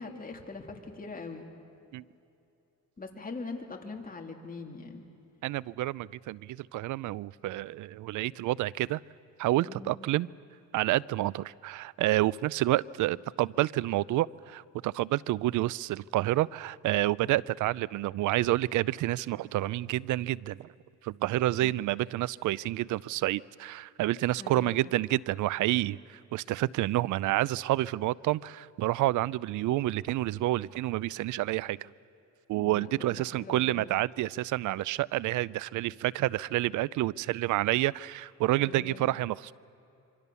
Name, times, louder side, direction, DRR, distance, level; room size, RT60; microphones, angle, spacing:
voice 1, 0.0-1.5 3.0-5.0 9.7-10.0 21.6-21.7 24.4-24.8 32.5-33.9 38.6-39.1, left 3 dB, 30° left, 2.9 m, -42 dB
voice 2, 5.4-9.0 9.4-10.3 10.7-20.7 21.0-31.9 32.5-39.5, right 16 dB, 80° right, 0.5 m, -29 dB
26.0 x 25.0 x 7.0 m
cardioid pair, 90°, 30 cm